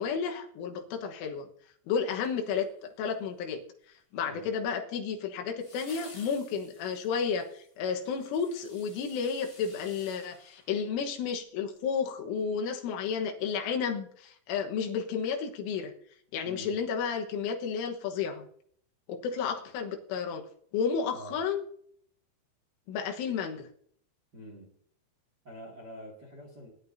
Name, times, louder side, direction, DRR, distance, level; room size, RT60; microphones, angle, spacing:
voice 1, 0.0-1.5 1.9-3.6 4.1-15.9 16.3-18.5 19.1-20.4 20.7-21.7 22.9-23.7, left 6 dB, 80° left, 3 dB, 3.8 m, -32 dB
sound 1, 2.2-3.1 5.6-11.4 11.8-11.9, left 3 dB, 25° left, 2.3 m, -54 dB
voice 2, 16.4-16.8 21.1-21.4 24.3-24.7 25.4-26.7, equal, 40° right, 0 dB, 1.5 m, -46 dB
19.0 x 11.0 x 2.7 m, 0.64 s
omnidirectional pair, 5.6 m